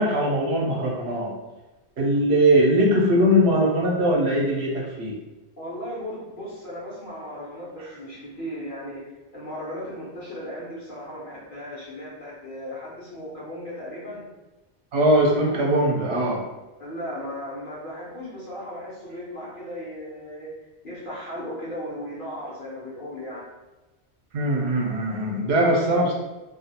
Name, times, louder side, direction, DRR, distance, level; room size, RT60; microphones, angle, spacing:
voice 1, 0.0-1.3 2.0-5.1 14.9-16.4 24.3-26.1, right 1 dB, 70° right, -2 dB, 0.9 m, -21 dB
voice 2, 5.6-14.3 16.8-23.5 26.1-26.2, equal, 50° left, -7 dB, 1.0 m, -36 dB
2.5 x 2.3 x 2.7 m, 1.1 s
omnidirectional pair, 1.1 m